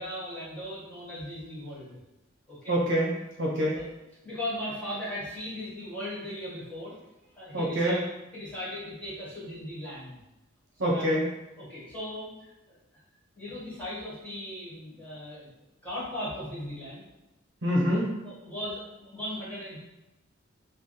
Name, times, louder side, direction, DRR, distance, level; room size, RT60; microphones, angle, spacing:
voice 1, 0.0-2.0 2.5-2.7 3.7-3.9 4.2-6.9 7.4-8.0 8.3-10.2 10.8-11.1 11.6-12.8 13.3-15.5 15.8-17.0 18.2-19.8, left 1 dB, 5° left, -9 dB, 1.4 m, -38 dB
voice 2, 2.7-3.1 3.4-3.8 7.5-8.0 10.8-11.3 17.6-18.1, equal, 60° right, -3 dB, 0.9 m, -25 dB
3.3 x 2.2 x 4.1 m, 0.95 s
head